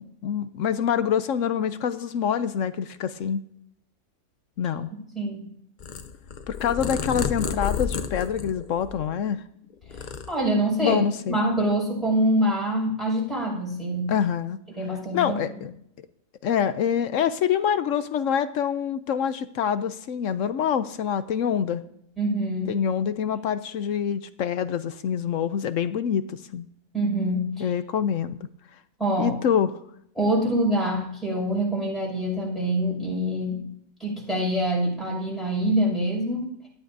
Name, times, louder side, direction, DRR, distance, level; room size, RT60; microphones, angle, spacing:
voice 1, 0.0-3.4 4.6-4.9 6.5-9.4 10.8-11.4 14.1-14.6 15.1-15.7 16.4-21.8 22.7-26.7 27.6-28.4 29.2-29.7, left 8 dB, 65° left, 12 dB, 0.9 m, -26 dB
voice 2, 5.1-5.5 10.3-14.1 14.8-15.4 22.2-22.8 26.9-27.7 29.0-29.4 30.2-33.7 34.0-36.5, right 1 dB, ahead, -4 dB, 5.5 m, -25 dB
Purr, 5.8-9.3 9.7-10.8, left 7 dB, 90° left, 0.4 m, -31 dB
17.5 x 12.5 x 2.7 m, 0.72 s
omnidirectional pair, 1.6 m